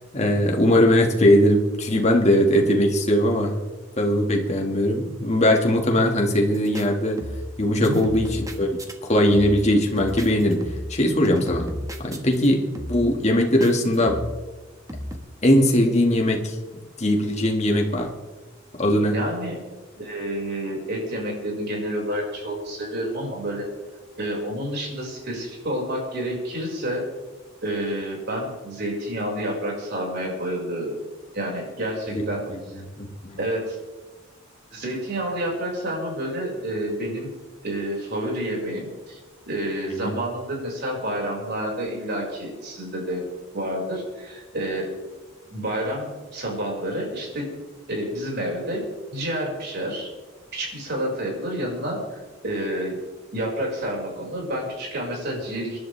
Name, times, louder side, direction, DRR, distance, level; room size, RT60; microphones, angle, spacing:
voice 1, 0.1-3.6 4.0-7.2 7.6-8.7 9.0-11.7 12.0-14.2 15.4-16.6 17.0-18.1 18.7-19.2 32.1-32.2 32.5-32.6 33.0-33.4 40.0-40.1, left 1 dB, 35° left, 1 dB, 2.1 m, -20 dB
sound 1, 6.5-6.9 7.2-7.6 7.8-8.9 9.3-9.7 10.0-11.0 11.2-12.5 12.7-13.1 13.6-14.4 14.9-15.2, equal, 20° right, 1.5 m, -34 dB
voice 2, 19.1-19.6 20.0-23.7 24.2-27.1 27.6-30.9 31.3-32.4 33.4-33.8 34.7-37.3 37.6-39.2 39.5-43.2 43.5-44.9 45.5-47.5 47.9-48.8 49.1-50.1 50.5-52.0 52.4-53.0 53.3-55.8, right 1 dB, 60° right, -2 dB, 5.7 m, -29 dB
27.0 x 11.5 x 3.5 m, 1.2 s
head